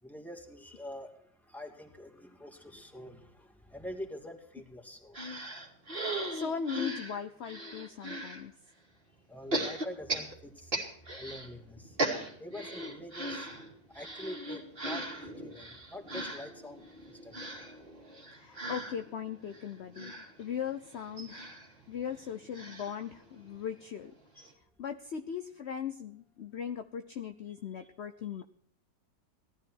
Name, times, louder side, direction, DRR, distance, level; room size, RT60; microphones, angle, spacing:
voice 1, 0.0-5.2 9.3-10.7 11.1-12.0 12.4-13.5 13.9-17.6 24.3-24.5 27.8-27.9, left 1 dB, ahead, 2 dB, 2.5 m, -46 dB
sound 1, 5.1-8.4 9.5-11.5 11.8-23.7 24.1-24.2 24.4-24.5, right 1 dB, 30° right, 2.6 m, -38 dB
voice 2, 6.0-8.5 18.4-21.5 21.9-24.1 24.8-28.4, left 8 dB, 55° left, 9 dB, 0.8 m, -39 dB
18.0 x 12.5 x 4.6 m, 0.67 s
omnidirectional pair, 1.9 m